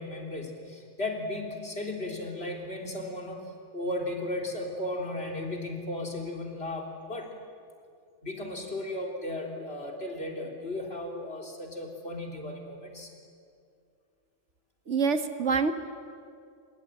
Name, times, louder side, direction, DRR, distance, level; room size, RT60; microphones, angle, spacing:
voice 1, 0.0-3.4 3.7-7.3 8.2-13.1, left 1 dB, 60° left, 1 dB, 3.7 m, -35 dB
voice 2, 14.9-15.7, right 5 dB, 90° right, 9 dB, 1.7 m, -26 dB
26.0 x 22.5 x 9.0 m, 2.3 s
omnidirectional pair, 1.2 m